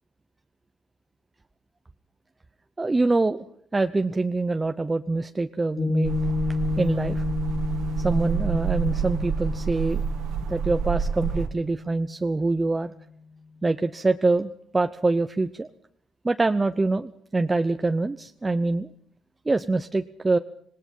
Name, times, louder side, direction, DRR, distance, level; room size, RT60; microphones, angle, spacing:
voice 1, 2.8-3.4 3.7-6.2 6.8-7.2 8.0-10.0 10.5-12.9 13.6-15.7 16.2-18.9 19.5-20.4, right 3 dB, 20° right, 8 dB, 0.8 m, -25 dB
Piano, 5.8-12.4, left 4 dB, 45° left, 2.4 m, -31 dB
sound 1, 6.0-11.5, right 7 dB, 85° right, 1.8 m, -29 dB
26.0 x 18.5 x 5.6 m, 0.67 s
cardioid pair, 90°, 0 cm